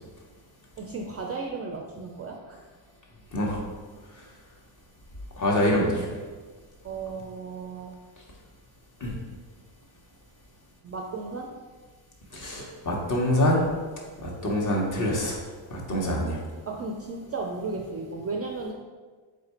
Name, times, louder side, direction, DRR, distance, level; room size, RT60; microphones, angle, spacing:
voice 1, 0.8-2.7 6.8-7.9 10.8-11.5 16.7-18.7, right 3 dB, 35° right, 1 dB, 0.4 m, -34 dB
voice 2, 3.3-3.6 5.4-6.2 9.0-9.1 12.3-13.7 14.2-15.4 15.7-16.4, left 1 dB, 40° left, -2 dB, 1.1 m, -25 dB
3.5 x 2.4 x 4.3 m, 1.4 s
supercardioid pair, 75°, 49 cm